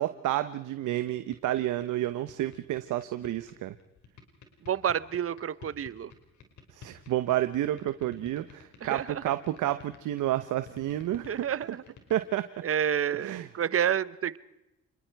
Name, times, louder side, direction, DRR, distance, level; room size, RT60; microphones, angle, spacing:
voice 1, 0.0-3.7 6.7-11.5 12.1-12.5 13.2-13.5, right 13 dB, 80° right, 11 dB, 1.0 m, -30 dB
sound 1, 0.8-12.2, left 9 dB, 70° left, 5.3 m, -49 dB
voice 2, 4.7-6.1 8.8-9.0 11.2-11.8 12.6-14.4, right 9 dB, 50° right, 18 dB, 1.0 m, -29 dB
27.5 x 21.5 x 4.7 m, 0.95 s
cardioid pair, 90°, 30 cm